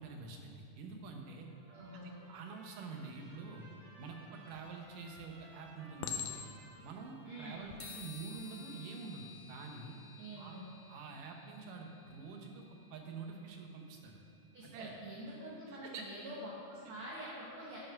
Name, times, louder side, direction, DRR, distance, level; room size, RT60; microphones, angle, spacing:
voice 1, 0.0-1.5 2.3-3.6 4.0-6.4 6.8-10.0 10.4-10.6 10.9-14.2 14.6-14.9 15.7-16.1 16.8-16.9, right 4 dB, 85° right, 2 dB, 2.6 m, -47 dB
Trumpet, 1.4-9.0, right 1 dB, 40° right, 3.4 m, -60 dB
voice 2, 1.7-2.2 7.2-7.6 10.2-10.6 14.5-17.8, right 1 dB, 55° right, -5 dB, 1.7 m, -46 dB
Chink clink, 4.5-5.0 6.0-6.8 7.5-7.8, left 8 dB, 85° left, 2.0 m, -41 dB
sound 1, 7.8-15.5, left 6 dB, 65° left, 1.7 m, -56 dB
11.5 x 5.6 x 5.8 m, 2.4 s
omnidirectional pair, 3.6 m